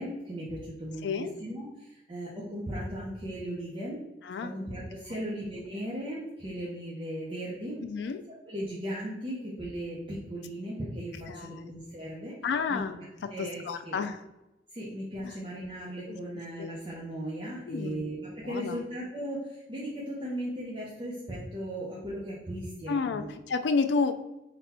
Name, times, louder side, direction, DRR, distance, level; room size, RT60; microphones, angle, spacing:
voice 1, 0.0-4.0 4.4-7.8 8.5-12.4 12.7-14.0 14.7-23.3, right 1 dB, 30° right, -6 dB, 0.7 m, -37 dB
voice 2, 1.0-1.3 4.2-4.5 5.1-5.2 7.8-8.2 11.3-11.7 12.4-14.2 15.2-15.4 16.1-16.2 16.6-16.8 17.7-18.0 18.4-18.8 22.9-24.1, left 5 dB, 80° left, 9 dB, 0.3 m, -31 dB
4.0 x 2.2 x 4.2 m, 0.97 s
head